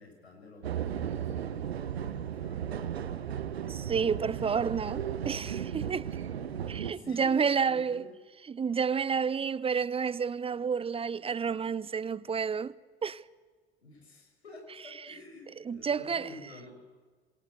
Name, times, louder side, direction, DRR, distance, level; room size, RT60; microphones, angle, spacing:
voice 1, 0.0-3.1 6.9-8.1 13.8-16.7, left 2 dB, 80° left, 6.5 m, -50 dB
sound 1, 0.6-6.9, right 9 dB, 75° right, 1.3 m, -35 dB
voice 2, 3.7-6.1 6.7-8.0 8.5-12.7 13.0-13.2 15.7-16.3, right 6 dB, 20° right, 0.7 m, -30 dB
27.0 x 22.0 x 8.2 m
figure-of-eight pair, 70°, 31 cm